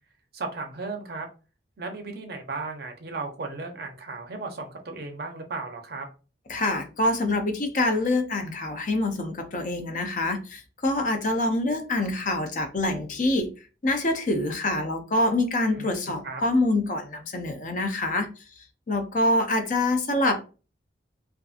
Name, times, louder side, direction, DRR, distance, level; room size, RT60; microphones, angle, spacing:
voice 1, 0.3-1.3 1.8-6.1 15.7-16.4, right 3 dB, 55° right, 4 dB, 0.5 m, -35 dB
voice 2, 6.5-13.5 13.8-18.3 18.9-20.4, left 2 dB, 45° left, 6 dB, 0.4 m, -25 dB
2.6 x 2.4 x 2.4 m, 0.34 s
head